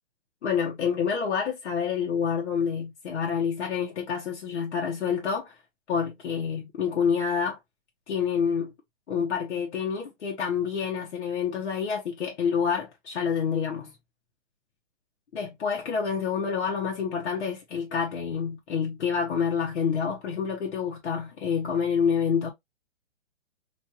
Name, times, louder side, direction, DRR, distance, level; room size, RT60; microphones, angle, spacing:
voice 1, 0.4-5.5 5.9-7.6 8.1-8.7 9.1-13.9 15.3-22.5, left 6 dB, 70° left, 1.1 m, -28 dB
3.2 x 2.5 x 2.7 m
hypercardioid pair, 165°, 35 cm